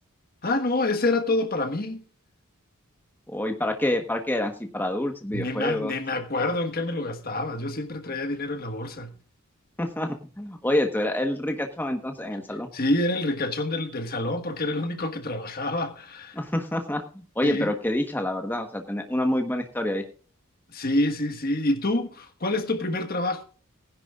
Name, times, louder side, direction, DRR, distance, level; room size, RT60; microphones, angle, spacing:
voice 1, 0.4-2.0 5.3-9.1 12.7-16.4 17.4-17.7 20.7-23.4, left 2 dB, 45° left, 1.5 m, -27 dB
voice 2, 3.3-5.9 9.8-12.7 16.3-20.0, left 1 dB, 10° left, 1.2 m, -27 dB
19.5 x 10.5 x 2.4 m
head